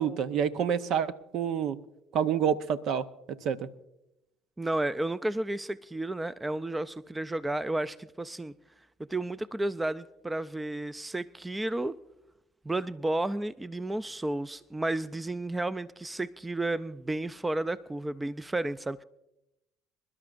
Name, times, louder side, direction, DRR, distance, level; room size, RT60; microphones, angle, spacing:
voice 1, 0.0-1.8 2.1-3.1 3.4-3.7, right 8 dB, 60° right, 0.7 m, -28 dB
voice 2, 4.6-8.5 9.1-12.0 12.6-19.0, right 2 dB, 15° right, 0.4 m, -32 dB
26.5 x 12.0 x 2.5 m
hypercardioid pair, 65°, 0 cm